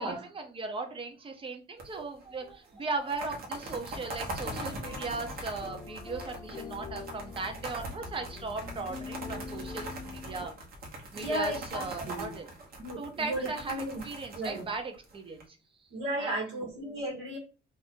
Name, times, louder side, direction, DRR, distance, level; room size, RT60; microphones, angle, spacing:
voice 1, 0.0-10.5 11.1-15.6 16.2-16.6, right 3 dB, 25° right, 4 dB, 0.6 m, -38 dB
sound 1, 1.8-2.2 2.5-2.6 2.9-15.4, right 1 dB, 50° right, 1.0 m, -41 dB
sound 2, 4.3-10.5, left 4 dB, 25° left, 0.6 m, -43 dB
voice 2, 11.1-12.3 12.8-14.0 14.3-14.7 15.9-17.4, right 1 dB, 80° right, -3 dB, 1.2 m, -34 dB
2.6 x 2.5 x 3.6 m, 0.33 s
cardioid pair, 145°, 20 cm